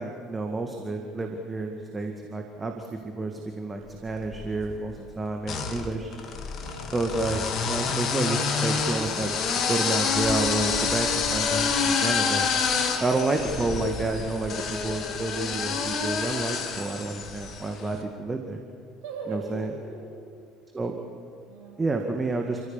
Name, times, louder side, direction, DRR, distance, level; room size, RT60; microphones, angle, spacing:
voice 1, 0.0-6.1 6.9-9.4 9.7-12.5 13.0-18.6 19.3-19.7 20.7-20.9 21.8-22.6, right 2 dB, 20° right, 3 dB, 2.0 m, -30 dB
sound 1, 4.1-4.7 5.4-17.7, left 5 dB, 45° left, 2.3 m, -28 dB
voice 2, 6.6-7.0 19.0-20.1 21.4-21.8, right 3 dB, 60° right, -1 dB, 6.3 m, -39 dB
28.5 x 15.0 x 7.3 m, 2.4 s
figure-of-eight pair, 60°, 0 cm